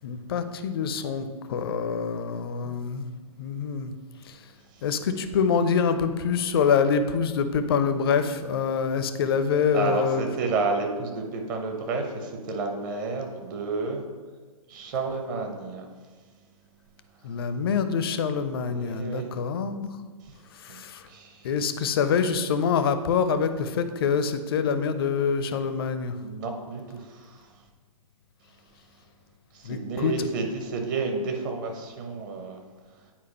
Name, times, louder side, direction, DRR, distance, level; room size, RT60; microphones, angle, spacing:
voice 1, 0.0-3.1 3.4-3.9 4.3-4.4 4.8-10.2 17.2-19.9 20.6-21.0 21.4-26.2 29.6-30.3, left 6 dB, 40° left, 10 dB, 0.4 m, -25 dB
voice 2, 9.7-14.0 14.7-15.9 18.7-19.3 20.7-20.8 21.1-21.5 26.2-27.5 29.5-32.6, right 3 dB, 35° right, 3 dB, 0.8 m, -31 dB
8.5 x 4.6 x 2.9 m, 1.4 s
figure-of-eight pair, 125°, 19 cm